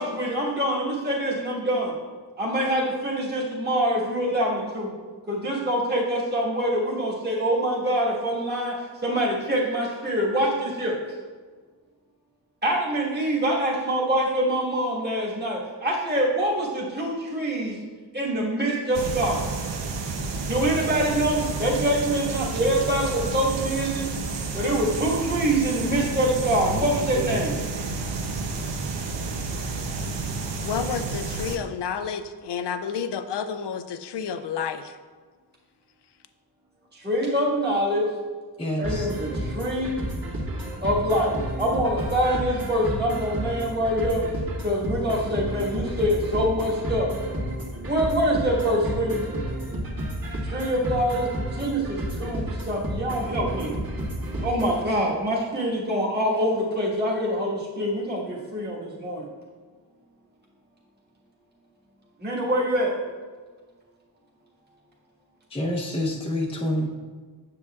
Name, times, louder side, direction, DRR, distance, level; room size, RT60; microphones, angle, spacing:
voice 1, 0.0-1.9 2.4-4.9 5.3-8.7 9.0-10.9 12.6-17.7 18.1-19.4 20.5-24.0 24.5-27.5 37.0-38.0 38.8-39.3 39.5-39.9 40.8-41.3 41.6-44.2 44.6-47.1 47.9-49.2 50.5-51.3 51.6-53.7 54.4-59.2 62.2-62.9, equal, 20° right, -6 dB, 1.5 m, -25 dB
sound 1, 18.9-31.6, right 3 dB, 70° right, 0.7 m, -30 dB
voice 2, 30.6-34.9, left 7 dB, 65° left, 10 dB, 0.5 m, -30 dB
voice 3, 38.6-39.1 65.5-66.9, left 1 dB, 15° left, -2 dB, 0.7 m, -27 dB
sound 2, 38.8-54.8, right 1 dB, 50° right, 1.7 m, -31 dB
7.8 x 7.0 x 2.3 m, 1.5 s
wide cardioid pair, 80°, 44 cm